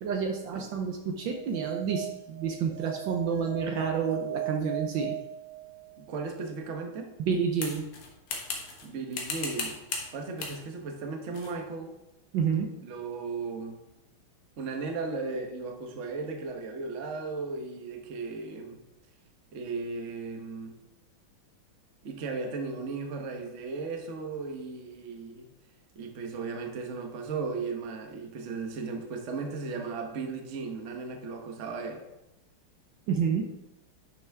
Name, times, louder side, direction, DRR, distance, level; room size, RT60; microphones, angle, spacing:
voice 1, 0.0-5.1 7.2-7.9 12.3-12.7 33.1-33.5, right 6 dB, 70° right, 3 dB, 1.4 m, -29 dB
sound 1, 1.3-6.1, right 15 dB, 90° right, 2.0 m, -38 dB
voice 2, 6.0-7.1 8.8-9.8 10.1-11.9 12.8-13.8 14.6-18.8 19.5-20.7 22.0-25.5 25.9-32.0, right 4 dB, 45° right, 3 dB, 1.1 m, -36 dB
sound 2, 7.6-8.9 9.1-10.1 10.4-10.6 11.3-11.6, left 4 dB, 75° left, 2.2 m, -36 dB
10.5 x 5.9 x 3.5 m, 0.94 s
omnidirectional pair, 2.4 m